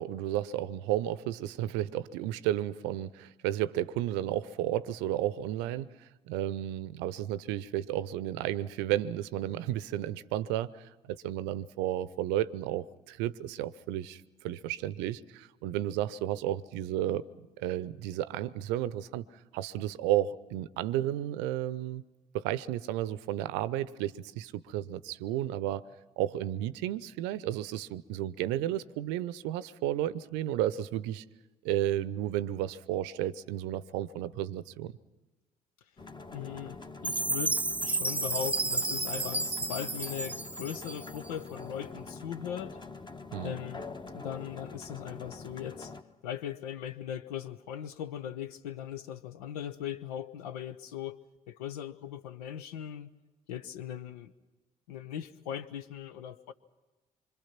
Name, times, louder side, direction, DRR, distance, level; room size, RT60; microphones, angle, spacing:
voice 1, 0.0-19.2 19.5-22.0 22.3-25.8 26.2-31.2 31.6-34.9 43.3-43.5, right 13 dB, 65° right, 0.7 m, -32 dB
sound 1, 36.0-46.0, left 3 dB, 20° left, 1.4 m, -45 dB
voice 2, 36.3-42.8 43.4-43.9 44.1-45.9 46.2-51.2 51.5-53.1 53.5-54.3 54.9-56.5, left 9 dB, 75° left, 0.9 m, -39 dB
Chime, 37.0-41.3, right 2 dB, 5° right, 0.7 m, -32 dB
26.0 x 25.0 x 5.9 m
figure-of-eight pair, 45°, 20 cm